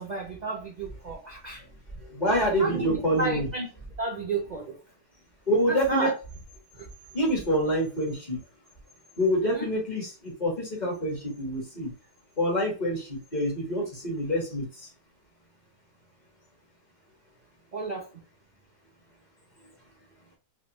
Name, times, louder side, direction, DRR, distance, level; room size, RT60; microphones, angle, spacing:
voice 1, 0.0-1.6 2.6-3.7 4.0-4.8 5.7-6.1 6.7-6.9 9.4-9.7 17.7-18.2, right 3 dB, 60° right, 0.4 m, -32 dB
voice 2, 2.1-3.5 5.5-6.1 7.1-8.4 9.2-11.9 12.4-14.9, equal, 25° left, 1.6 m, -26 dB
3.4 x 3.3 x 3.0 m
omnidirectional pair, 1.8 m